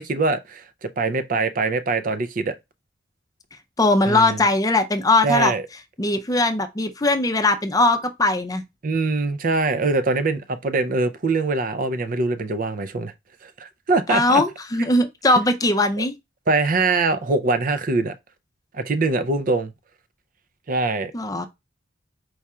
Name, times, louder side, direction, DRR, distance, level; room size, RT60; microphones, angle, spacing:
voice 1, 0.0-2.5 4.1-4.4 5.2-5.6 8.8-13.1 13.4-14.4 16.0-16.1 16.5-18.1 18.7-19.7 20.7-21.1, right 3 dB, 45° right, 0.5 m, -23 dB
voice 2, 3.8-5.5 6.0-8.6 14.1-16.1 21.1-21.5, left 2 dB, 20° left, 0.5 m, -20 dB
4.7 x 2.4 x 4.2 m
head